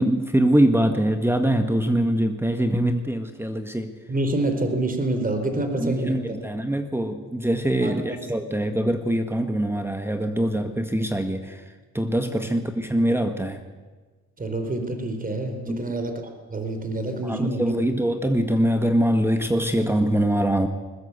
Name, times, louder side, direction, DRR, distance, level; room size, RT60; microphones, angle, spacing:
voice 1, 0.0-3.9 5.8-11.6 11.9-13.6 15.7-15.9 17.2-20.7, right 1 dB, 10° right, 7 dB, 1.7 m, -23 dB
voice 2, 4.1-6.4 7.8-8.0 14.4-17.8, right 2 dB, 30° right, 7 dB, 4.0 m, -27 dB
21.0 x 20.0 x 8.3 m, 1.4 s
cardioid pair, 90°, 30 cm